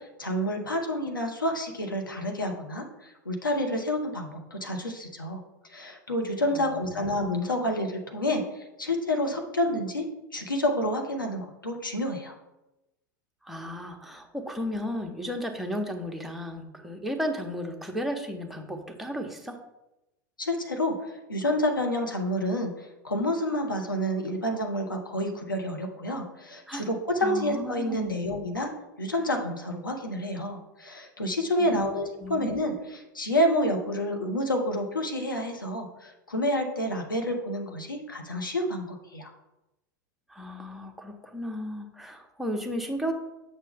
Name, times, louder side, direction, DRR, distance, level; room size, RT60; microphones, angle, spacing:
voice 1, 0.2-5.4 5.7-10.0 10.3-12.4 20.4-28.7 29.0-39.3, left 1 dB, 90° left, 3 dB, 1.3 m, -29 dB
voice 2, 6.5-7.0 13.4-19.6 26.7-26.8 27.2-28.3 31.6-32.5 40.3-43.1, equal, ahead, 2 dB, 1.2 m, -34 dB
8.5 x 6.5 x 3.6 m, 0.95 s
figure-of-eight pair, 90°, 11 cm